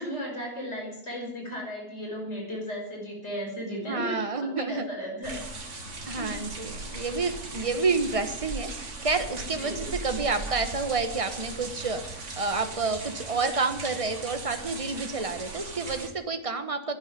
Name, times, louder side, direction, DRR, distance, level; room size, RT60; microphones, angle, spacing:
voice 1, 0.0-5.4 6.2-6.4 9.5-9.9, equal, 55° left, -1 dB, 6.1 m, -35 dB
voice 2, 3.8-4.8 6.1-17.0, right 4 dB, 25° right, 8 dB, 1.4 m, -29 dB
sound 1, 5.2-16.1, right 3 dB, 65° right, 2.3 m, -38 dB
11.5 x 10.5 x 9.7 m, 0.80 s
omnidirectional pair, 1.4 m